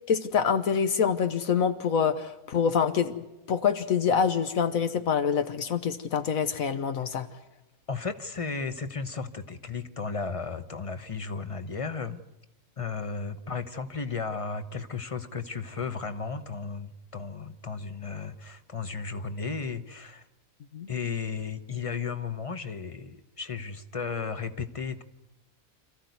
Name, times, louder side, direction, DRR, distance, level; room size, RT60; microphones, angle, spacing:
voice 1, 0.1-3.2 3.5-7.3 20.7-20.9, left 7 dB, 70° left, 10 dB, 1.4 m, -26 dB
voice 2, 7.9-12.2 12.8-20.2 20.9-25.0, left 5 dB, 25° left, 10 dB, 0.9 m, -34 dB
26.5 x 14.5 x 9.4 m, 0.98 s
omnidirectional pair, 1.5 m